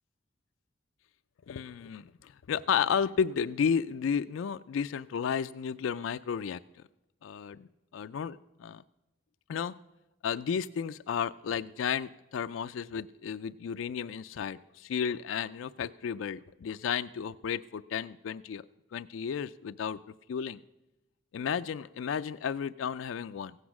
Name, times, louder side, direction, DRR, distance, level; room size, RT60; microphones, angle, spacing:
voice 1, 1.5-6.6 7.2-7.7 7.9-8.8 9.5-9.7 10.2-18.6 18.9-20.0 20.3-20.6 21.3-23.5, left 7 dB, 85° left, 11 dB, 0.3 m, -33 dB
15.5 x 8.2 x 6.0 m, 0.97 s
head